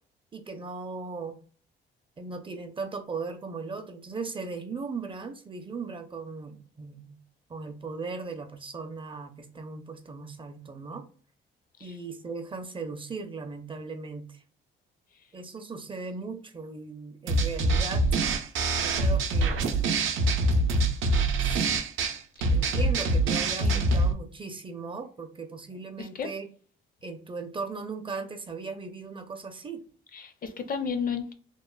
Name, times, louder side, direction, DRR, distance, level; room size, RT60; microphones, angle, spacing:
voice 1, 0.3-1.4 2.2-7.2 7.5-11.0 11.8-14.4 15.3-18.1 18.7-19.7 20.0-20.2 20.5-21.1 21.4-21.7 22.5-26.5 27.0-29.8, right 4 dB, 25° right, 0.5 m, -38 dB
sound 1, 17.3-24.1, right 2 dB, 85° right, 0.5 m, -25 dB
voice 2, 26.0-26.3 30.1-31.3, left 6 dB, 45° left, 0.5 m, -33 dB
2.9 x 2.1 x 2.3 m
cardioid pair, 90°, 20 cm